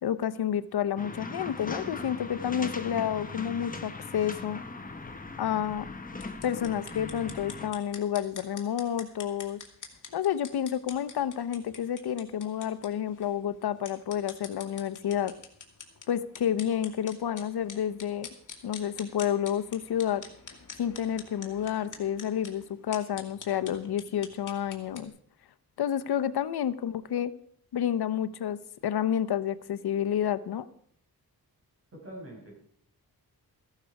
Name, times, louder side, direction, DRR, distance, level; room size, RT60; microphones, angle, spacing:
voice 1, 0.0-4.6 5.4-5.9 6.4-9.6 10.1-15.3 16.1-18.3 18.6-20.2 20.8-25.1 25.8-27.3 27.7-28.6 28.8-30.7, left 9 dB, 80° left, 12 dB, 0.8 m, -30 dB
sound 1, 1.0-7.7, left 3 dB, 20° left, 1.2 m, -39 dB
sound 2, 6.1-25.1, left 5 dB, 50° left, 2.1 m, -47 dB
voice 2, 31.9-32.8, right 1 dB, 35° right, -1 dB, 5.6 m, -45 dB
15.0 x 11.5 x 4.8 m, 0.64 s
wide cardioid pair, 120°, 38 cm